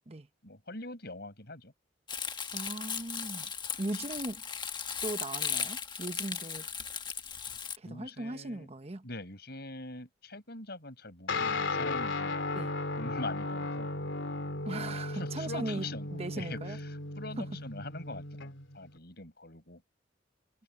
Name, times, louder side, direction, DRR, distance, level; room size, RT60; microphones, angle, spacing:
voice 1, 0.4-1.7 3.9-4.0 7.8-8.7 9.0-13.9 15.1-19.8, left 2 dB, 60° left, 7.5 m, -43 dB
Crumpling crinkling, 2.1-7.8, left 7 dB, 25° left, 1.5 m, -37 dB
voice 2, 2.5-3.5 3.8-4.4 5.0-6.7 7.8-9.0 12.5-12.7 14.6-16.8, right 2 dB, 35° right, 1.0 m, -38 dB
Guitar, 11.3-19.0, left 3 dB, 85° left, 3.1 m, -35 dB
head